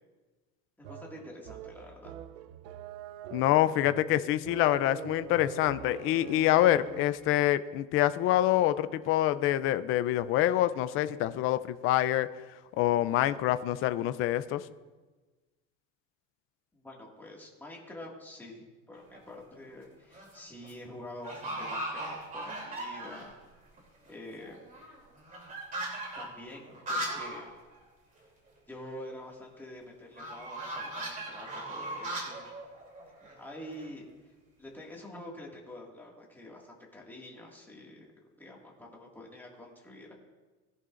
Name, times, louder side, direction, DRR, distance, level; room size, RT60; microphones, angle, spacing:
voice 1, 0.8-2.1 16.7-23.3 24.1-24.6 26.2-27.5 28.7-32.5 33.2-34.0 34.6-38.1 38.4-40.1, left 1 dB, 5° left, -2 dB, 2.0 m, -47 dB
sound 1, 0.8-7.3, right 10 dB, 90° right, 0.7 m, -45 dB
voice 2, 3.3-12.3 12.8-14.6, left 13 dB, 40° left, 13 dB, 0.5 m, -26 dB
sound 2, 18.9-19.4 19.9-20.4 20.6-20.7 21.2-23.4 23.8-23.9 24.1-27.5 27.8-27.9 28.2-28.3 30.2-33.9, right 1 dB, 25° right, 3.0 m, -38 dB
20.0 x 10.5 x 2.5 m, 1.3 s
cardioid pair, 165°, 32 cm